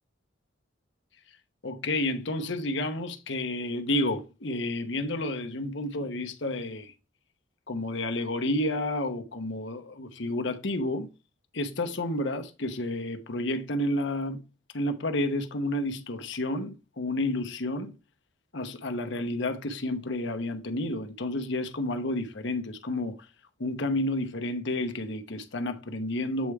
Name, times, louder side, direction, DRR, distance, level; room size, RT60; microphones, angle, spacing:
voice 1, 1.6-6.9 7.7-11.1 11.5-14.4 14.7-17.9 18.5-23.2 23.6-26.5, left 1 dB, 60° left, 0.9 m, -30 dB
8.1 x 3.4 x 4.7 m
head